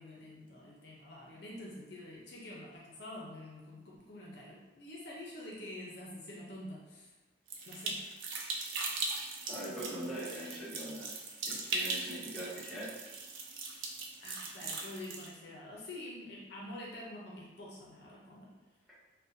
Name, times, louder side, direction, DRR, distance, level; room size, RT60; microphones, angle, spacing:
voice 1, 0.0-7.1 7.7-8.1 14.2-18.5, left 1 dB, 55° left, -4 dB, 0.6 m, -47 dB
sound 1, 7.5-15.3, right 3 dB, 85° right, 0.5 m, -39 dB
voice 2, 9.5-11.1 11.4-12.9, right 1 dB, ahead, -11 dB, 1.0 m, -41 dB
3.9 x 2.1 x 2.6 m, 1.1 s
head